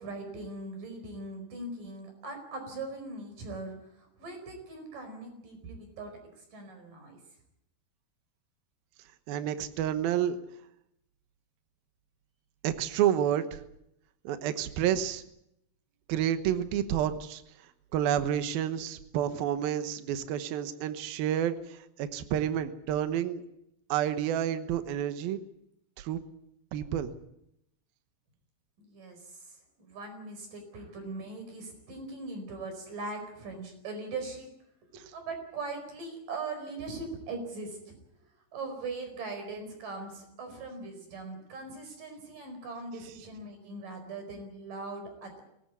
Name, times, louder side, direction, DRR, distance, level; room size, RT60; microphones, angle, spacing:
voice 1, 0.0-7.2 28.8-34.5 34.9-38.0 38.5-45.4, right 3 dB, 40° right, 6 dB, 6.0 m, -40 dB
voice 2, 9.3-10.4 12.6-13.6 14.2-15.2 16.1-17.4 17.9-23.4 23.9-25.4 26.0-26.2 26.7-27.1, right 10 dB, 90° right, 10 dB, 2.0 m, -29 dB
22.0 x 18.0 x 8.3 m, 0.80 s
omnidirectional pair, 5.9 m